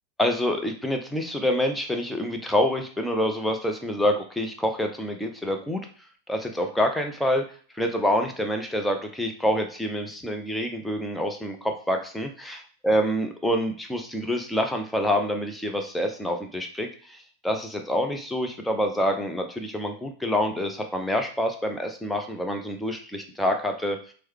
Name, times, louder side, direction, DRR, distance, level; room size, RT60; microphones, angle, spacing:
voice 1, 0.2-5.9 6.3-7.4 7.7-24.0, equal, 5° left, 4 dB, 0.5 m, -27 dB
4.6 x 2.1 x 3.1 m, 0.43 s
figure-of-eight pair, 90°, 0 cm